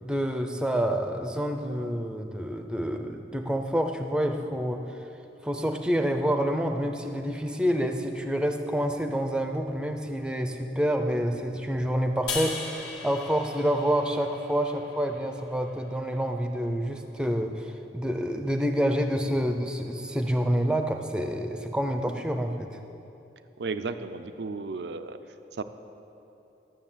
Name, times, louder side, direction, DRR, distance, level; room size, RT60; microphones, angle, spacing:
voice 1, 0.0-4.8 5.4-22.8, equal, 5° right, 5 dB, 0.6 m, -28 dB
sound 1, 12.3-15.6, left 4 dB, 70° left, 1.8 m, -37 dB
voice 2, 23.6-25.2 25.5-25.6, right 4 dB, 75° right, 10 dB, 0.5 m, -34 dB
12.5 x 7.2 x 7.4 m, 2.9 s
head